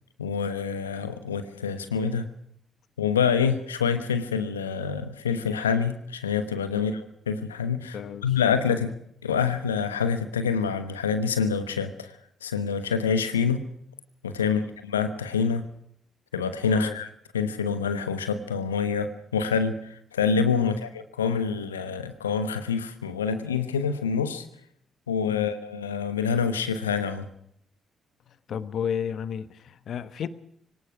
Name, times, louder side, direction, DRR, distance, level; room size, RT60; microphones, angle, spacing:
voice 1, 0.2-2.3 3.0-8.9 9.2-12.1 12.4-13.7 14.2-15.7 16.3-17.1 17.3-24.4 25.1-27.3, left 6 dB, 85° left, 11 dB, 1.1 m, -26 dB
voice 2, 7.9-8.3 14.4-14.7 16.7-17.0 20.6-20.8 25.3-25.5 28.3-30.3, left 8 dB, 55° left, 15 dB, 1.2 m, -33 dB
23.5 x 18.5 x 6.2 m, 0.70 s
figure-of-eight pair, 40°, 0 cm